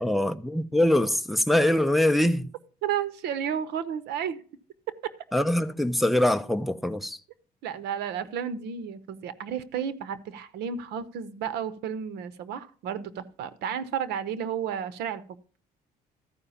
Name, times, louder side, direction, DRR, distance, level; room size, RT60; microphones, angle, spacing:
voice 1, 0.0-2.5 5.3-7.2, left 1 dB, ahead, 0.7 m, -23 dB
voice 2, 2.8-4.4 7.6-15.4, right 8 dB, 80° right, 0.9 m, -32 dB
13.5 x 4.9 x 7.1 m
cardioid pair, 110°, 17 cm